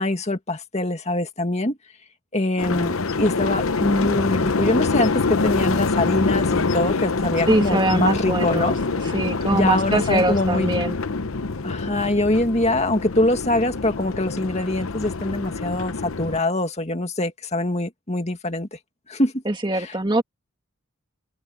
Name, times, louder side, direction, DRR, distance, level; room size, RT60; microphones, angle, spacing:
voice 1, 0.0-1.8 2.3-8.8 9.5-10.8 11.6-18.8 19.1-19.4 19.7-19.9, left 1 dB, 30° left, 2.0 m, -23 dB
sound 1, 2.6-16.4, left 4 dB, 75° left, 0.8 m, -25 dB
voice 2, 7.5-8.8 9.0-11.0 19.5-20.2, right 2 dB, 20° right, 2.1 m, -22 dB
open air
head